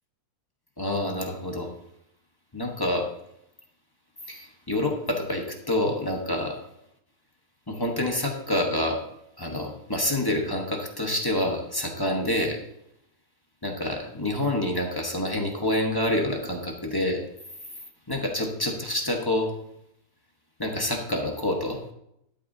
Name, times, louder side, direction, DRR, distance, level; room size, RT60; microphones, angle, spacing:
voice 1, 0.8-1.7 2.5-3.1 4.3-6.6 7.7-9.0 9.4-12.6 13.6-17.2 18.1-19.5 20.6-21.9, left 1 dB, 15° left, 1 dB, 1.2 m, -27 dB
11.5 x 8.3 x 2.8 m, 0.78 s
omnidirectional pair, 1.7 m